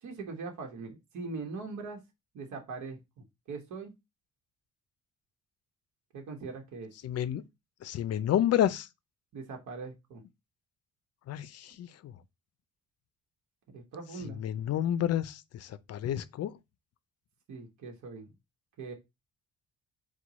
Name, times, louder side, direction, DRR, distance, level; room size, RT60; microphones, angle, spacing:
voice 1, 0.0-2.0 2.3-3.9 6.1-6.9 9.3-10.2 13.7-14.5 17.5-18.3 18.8-18.9, right 4 dB, 70° right, 1.1 m, -41 dB
voice 2, 7.0-7.4 7.8-8.9 11.3-12.1 14.4-16.5, left 11 dB, 55° left, 0.5 m, -30 dB
4.5 x 2.3 x 3.9 m
cardioid pair, 90°, 30 cm